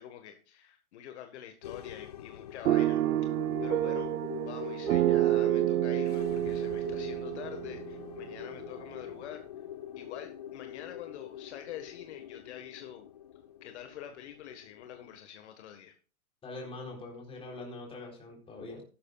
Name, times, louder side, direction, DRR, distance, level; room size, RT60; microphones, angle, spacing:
voice 1, 0.0-3.0 3.6-4.1 4.4-9.4 9.9-13.1 13.6-15.9, left 10 dB, 50° left, 6 dB, 1.6 m, -46 dB
sound 1, 1.6-15.2, left 10 dB, 30° left, 0.4 m, -44 dB
sound 2, 2.7-8.7, right 14 dB, 80° right, 0.6 m, -29 dB
voice 2, 16.4-18.8, left 2 dB, 15° left, 0 dB, 3.9 m, -43 dB
13.5 x 12.0 x 2.4 m, 0.36 s
hypercardioid pair, 145°, 43 cm